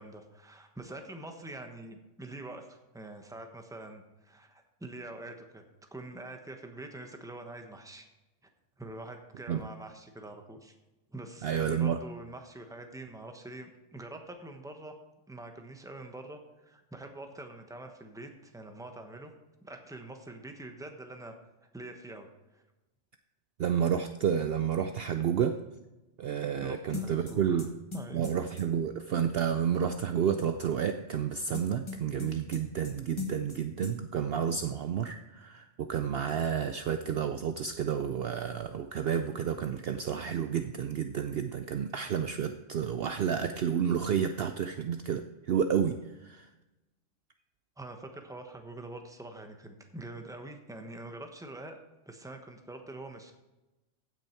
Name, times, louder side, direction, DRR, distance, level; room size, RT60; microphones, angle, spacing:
voice 1, 0.0-5.6 5.9-8.1 8.8-10.7 11.1-14.9 15.3-19.3 19.6-21.3 21.7-22.6 26.6-27.7 27.9-28.4 47.8-51.8 52.1-53.3, right 2 dB, 5° right, 5 dB, 1.0 m, -45 dB
voice 2, 11.4-12.0 23.6-25.5 26.2-27.7 28.1-46.0 46.2-46.5, right 8 dB, 60° right, 8 dB, 0.7 m, -30 dB
sound 1, 26.9-28.7 31.5-32.9 33.2-33.6 33.8-33.9, left 5 dB, 25° left, 1.3 m, -39 dB
15.5 x 6.3 x 4.5 m, 1.0 s
omnidirectional pair, 1.3 m